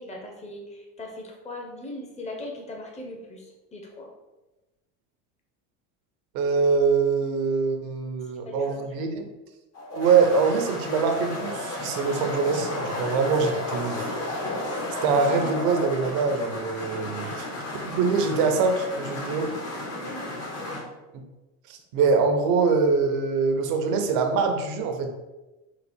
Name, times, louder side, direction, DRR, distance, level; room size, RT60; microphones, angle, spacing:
voice 1, 0.0-4.1 8.5-9.2 16.9-17.4 19.9-20.3 20.6-20.8, left 1 dB, 15° left, 0 dB, 0.9 m, -40 dB
voice 2, 6.3-9.3 9.9-14.1 15.0-17.5 17.8-19.5 21.7-25.1, right 5 dB, 65° right, 5 dB, 0.9 m, -24 dB
sound 1, 9.7-20.8, left 1 dB, 40° left, 1.2 m, -33 dB
4.1 x 2.4 x 4.4 m, 1.1 s
supercardioid pair, 105°, 38 cm